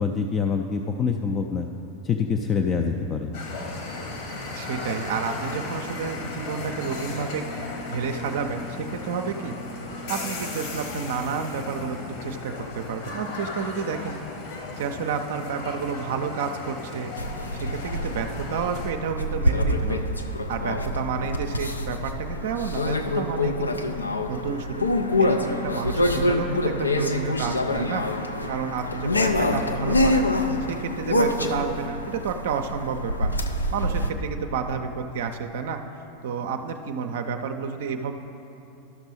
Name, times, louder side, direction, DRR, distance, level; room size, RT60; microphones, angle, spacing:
voice 1, 0.0-1.7 2.0-3.3, left 5 dB, 30° left, 5 dB, 0.4 m, -25 dB
sound 1, 3.3-18.9, left 3 dB, 55° left, 1.4 m, -35 dB
voice 2, 4.5-9.5 10.1-14.2 14.8-17.1 17.5-20.1 20.5-23.8 24.3-24.9 25.2-30.3 30.7-33.3 33.7-35.8 36.2-38.1, right 6 dB, 60° right, 5 dB, 0.5 m, -30 dB
sound 2, 17.2-34.1, left 1 dB, 85° left, 0.5 m, -26 dB
12.5 x 6.1 x 4.1 m, 2.9 s
figure-of-eight pair, 85°, 0 cm